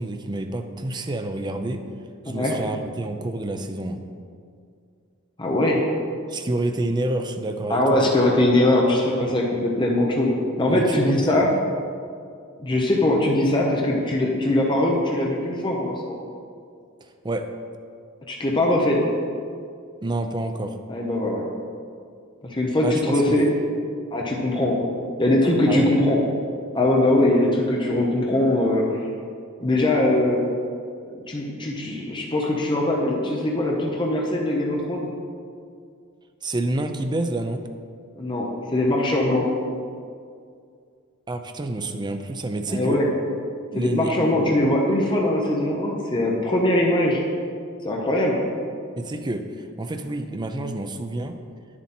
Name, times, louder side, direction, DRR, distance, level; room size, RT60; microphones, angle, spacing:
voice 1, 0.0-1.8 2.2-4.0 6.3-8.1 9.2-9.4 10.7-11.3 17.0-17.5 20.0-20.8 22.8-23.4 25.7-25.9 36.4-37.6 41.3-43.0 43.7-44.6 49.0-51.4, right 2 dB, 20° right, 6 dB, 0.5 m, -28 dB
voice 2, 5.4-5.8 7.7-10.3 10.6-11.5 12.6-16.2 18.3-19.0 20.9-21.4 22.4-23.5 24.1-24.8 25.2-26.2 26.7-28.8 29.6-30.4 31.0-35.1 38.2-38.5 38.7-39.4 42.7-43.1 43.7-47.2 47.8-48.4, left 1 dB, 25° left, -2 dB, 0.9 m, -21 dB
9.5 x 7.3 x 4.4 m, 2.3 s
head